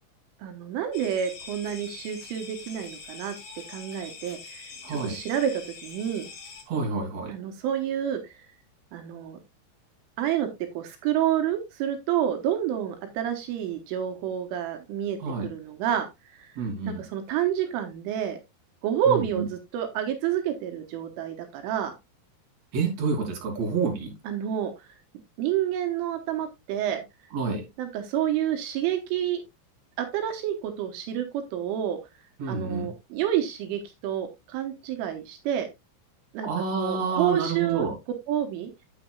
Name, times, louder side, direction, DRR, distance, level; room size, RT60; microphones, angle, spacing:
voice 1, 0.4-3.4 3.7-6.3 7.3-8.3 8.9-9.4 10.2-10.5 10.8-15.2 15.4-16.1 16.4-16.5 16.9-18.4 18.8-21.9 24.3-24.7 25.4-27.0 27.8-29.4 30.0-32.0 32.5-35.7 36.3-36.5 36.8-37.9 38.3-38.7, right 10 dB, 80° right, 5 dB, 3.5 m, -29 dB
sound 1, 0.9-6.6, left 4 dB, 40° left, 3.2 m, -44 dB
voice 2, 4.8-5.2 6.7-7.3 15.2-15.5 16.6-17.0 19.1-19.5 22.7-24.1 27.3-27.7 32.4-32.9 36.4-38.0, right 4 dB, 40° right, 1 dB, 3.5 m, -28 dB
9.2 x 9.0 x 2.3 m, 0.21 s
omnidirectional pair, 5.7 m